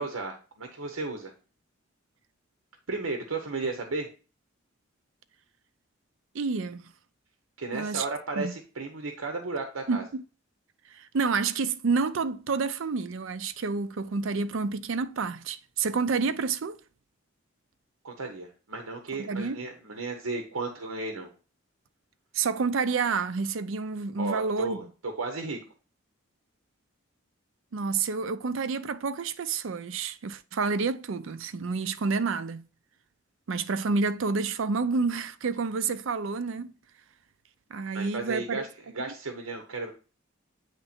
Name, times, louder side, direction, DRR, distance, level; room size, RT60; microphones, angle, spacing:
voice 1, 0.0-1.3 2.9-4.1 7.6-10.0 18.0-21.3 24.2-25.6 37.9-39.9, right 3 dB, 90° right, 0.9 m, -34 dB
voice 2, 6.3-6.9 7.7-8.0 8.4-8.5 9.9-10.2 10.9-16.8 19.2-19.6 22.3-24.8 27.7-32.7 33.5-36.7 37.7-38.6, right 4 dB, 65° right, 0.5 m, -29 dB
8.8 x 3.3 x 4.3 m
head